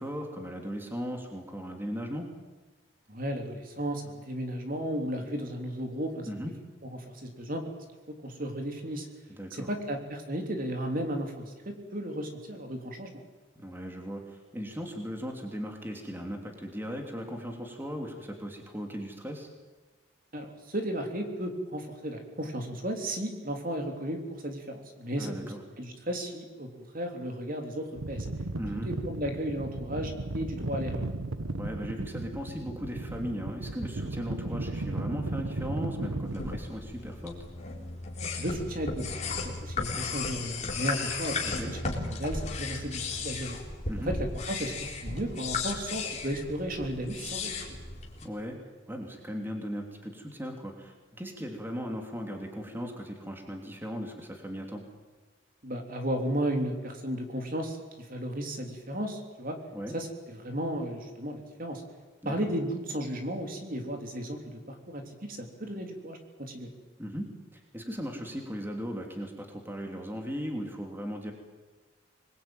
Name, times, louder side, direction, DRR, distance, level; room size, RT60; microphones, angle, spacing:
voice 1, 0.0-2.3 6.2-6.5 9.3-9.7 13.5-19.5 25.2-25.6 28.6-28.9 31.6-37.4 41.5-41.7 43.9-44.1 48.2-48.6 48.9-54.8 59.7-59.9 62.2-62.3 67.0-67.3 67.5-71.3, equal, 10° right, 2 dB, 2.9 m, -37 dB
voice 2, 3.1-6.3 7.1-7.7 8.1-9.1 9.5-13.1 20.3-28.3 28.7-31.1 38.4-39.1 39.4-43.6 44.0-47.8 55.6-59.6 59.9-61.8 62.2-66.7, right 1 dB, 45° right, 4 dB, 3.3 m, -34 dB
sound 1, 28.0-36.6, right 2 dB, 90° right, 1.3 m, -35 dB
sound 2, 36.2-48.2, left 4 dB, 35° left, 4.2 m, -35 dB
26.0 x 21.5 x 9.1 m, 1.3 s
head